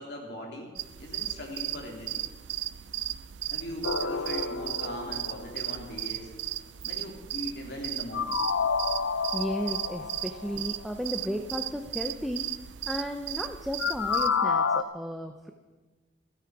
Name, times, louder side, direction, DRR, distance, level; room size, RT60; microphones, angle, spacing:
voice 1, 0.0-2.3 3.5-6.3 6.8-8.4, equal, 60° left, 1 dB, 3.1 m, -40 dB
sound 1, 0.8-14.3, right 13 dB, 70° right, 0.4 m, -36 dB
sound 2, 3.8-5.9 8.1-10.8 13.8-14.8, left 5 dB, 85° left, 0.7 m, -29 dB
voice 2, 9.3-12.5 12.9-15.5, equal, ahead, 4 dB, 0.7 m, -34 dB
29.0 x 9.7 x 4.8 m, 1.3 s
head